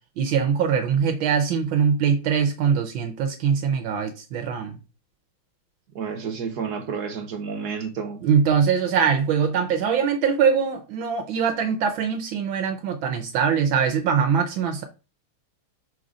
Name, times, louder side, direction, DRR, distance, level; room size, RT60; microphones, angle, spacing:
voice 1, 0.2-4.8 8.2-14.8, right 7 dB, 75° right, 1.5 m, -22 dB
voice 2, 5.9-8.2, right 6 dB, 55° right, 1.3 m, -30 dB
5.6 x 3.9 x 4.8 m
omnidirectional pair, 2.2 m